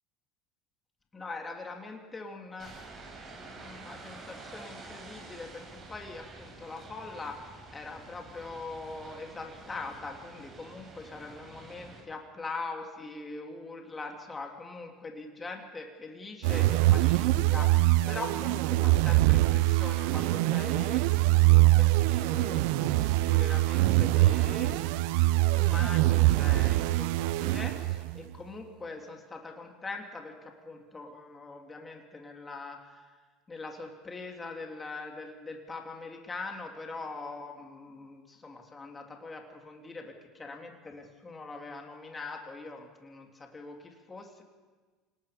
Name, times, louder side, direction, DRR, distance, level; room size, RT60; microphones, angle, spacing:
voice 1, 1.1-24.8 25.5-33.1 33.5-44.4, left 3 dB, 25° left, 2 dB, 3.4 m, -42 dB
sound 1, 2.6-12.0, right 3 dB, 40° right, 6.7 m, -48 dB
sound 2, 16.4-28.2, right 18 dB, 75° right, 0.7 m, -24 dB
27.0 x 19.5 x 5.4 m, 1.4 s
hypercardioid pair, 80°, 0 cm